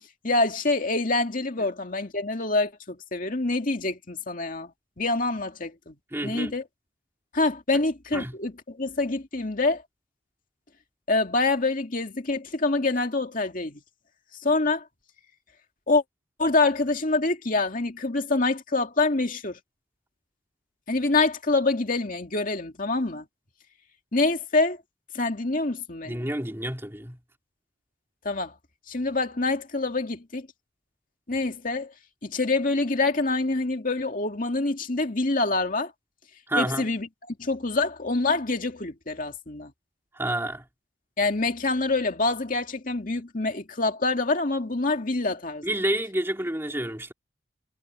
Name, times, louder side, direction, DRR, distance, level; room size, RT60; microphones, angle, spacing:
voice 1, 0.2-4.7 5.0-5.9 6.2-6.6 7.3-9.8 11.1-13.8 14.4-14.8 15.9-16.0 16.4-19.6 20.9-23.2 24.1-24.8 25.1-26.2 28.2-28.5 28.9-30.5 31.3-31.9 32.2-35.9 36.6-39.7 41.2-45.6, left 3 dB, 45° left, 2.3 m, -26 dB
voice 2, 6.1-6.5 7.7-7.8 8.1-8.3 26.0-27.2 36.5-36.9 40.1-40.6 45.6-47.1, right 1 dB, 10° right, 3.4 m, -29 dB
head